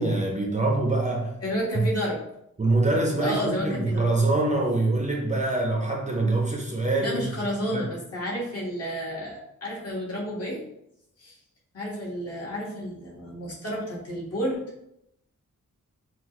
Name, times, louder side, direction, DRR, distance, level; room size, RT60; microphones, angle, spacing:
voice 1, 0.0-1.3 1.7-1.9 2.6-7.3 7.7-7.9, right 2 dB, 25° right, 0 dB, 0.6 m, -24 dB
voice 2, 1.4-2.2 3.2-4.1 7.0-10.6 11.2-11.4 11.7-14.6, equal, 50° left, -4 dB, 1.6 m, -31 dB
5.8 x 2.5 x 3.0 m, 0.78 s
wide cardioid pair, 155°, 31 cm